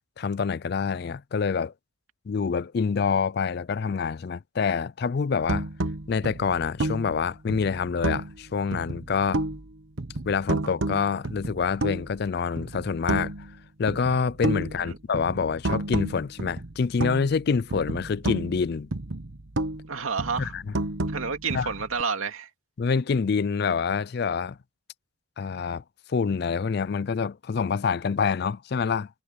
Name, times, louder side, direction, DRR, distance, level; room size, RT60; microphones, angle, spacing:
voice 1, 0.2-1.7 2.3-5.7 6.1-9.4 10.2-13.3 13.8-18.9 20.4-20.7 21.5-21.7 22.8-24.6 25.4-25.8 26.1-29.1, left 5 dB, 50° left, 0.4 m, -26 dB
sound 1, 5.5-8.4 8.7-9.7 10.0-12.2 12.6-13.6 13.9-17.4 17.7-19.9 20.2-22.0, right 2 dB, 70° right, 1.1 m, -31 dB
voice 2, 19.9-20.5 21.1-22.5, right 5 dB, 90° right, 2.5 m, -30 dB
head